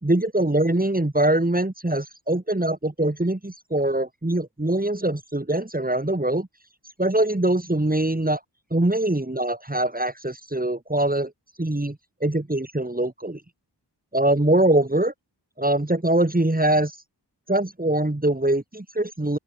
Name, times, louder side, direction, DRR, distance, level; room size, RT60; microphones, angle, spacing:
voice 1, 0.0-6.5 7.0-8.4 8.7-11.3 11.6-13.4 14.1-15.1 15.6-17.0 17.5-19.4, right 1 dB, 20° right, 4.1 m, -23 dB
open air
wide cardioid pair, 60°, 41 cm